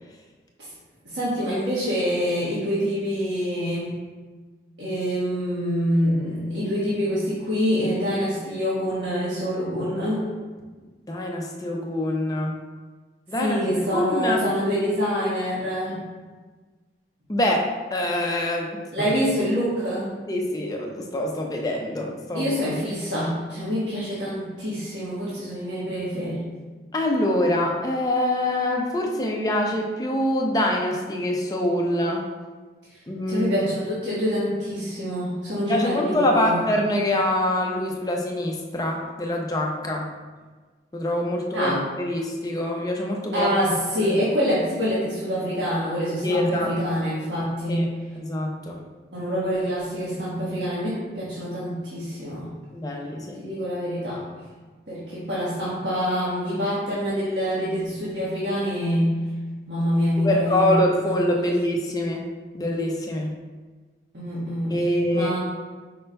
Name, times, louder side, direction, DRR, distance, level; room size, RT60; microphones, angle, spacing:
voice 1, 1.0-4.0 4.8-10.2 13.4-16.0 18.9-20.1 22.3-26.4 33.3-36.6 41.5-41.8 43.3-47.9 49.1-52.5 53.4-54.2 54.9-59.1 59.7-60.8 61.3-61.5 64.1-64.8 65.1-65.4, equal, 80° right, -10 dB, 1.3 m, -26 dB
voice 2, 11.1-12.5 13.3-13.6 13.9-14.4 17.3-19.1 20.3-22.5 26.9-32.2 33.1-33.5 35.6-40.1 40.9-41.7 42.0-43.6 44.0-44.1 46.2-46.7 47.7-47.9 48.2-48.8 52.7-53.4 60.2-62.3 62.5-63.3 64.7-65.3, left 1 dB, 20° left, 0 dB, 0.5 m, -25 dB
5.3 x 4.4 x 2.2 m, 1.4 s
head